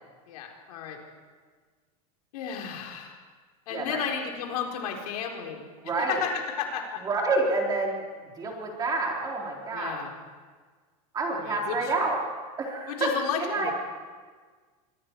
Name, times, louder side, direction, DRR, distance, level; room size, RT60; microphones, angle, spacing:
voice 1, 0.3-1.0 2.3-3.2 3.7-5.6 6.1-7.0 9.7-10.1 11.4-11.9 12.9-13.7, left 7 dB, 80° left, 1 dB, 4.2 m, -33 dB
voice 2, 5.8-6.2 7.0-10.0 11.1-12.2 12.6-13.1 13.4-13.7, right 3 dB, 20° right, -1 dB, 3.9 m, -28 dB
26.0 x 24.5 x 4.7 m, 1.5 s
supercardioid pair, 160°, 19 cm